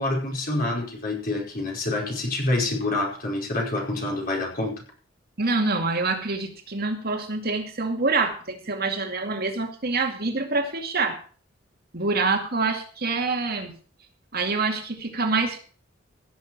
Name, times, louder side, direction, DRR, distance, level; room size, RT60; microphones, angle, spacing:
voice 1, 0.0-4.8, left 2 dB, 50° left, -1 dB, 5.1 m, -27 dB
voice 2, 5.4-11.2 11.9-13.8 14.3-15.6, right 3 dB, 55° right, 3 dB, 2.4 m, -26 dB
16.5 x 7.1 x 6.3 m, 0.42 s
head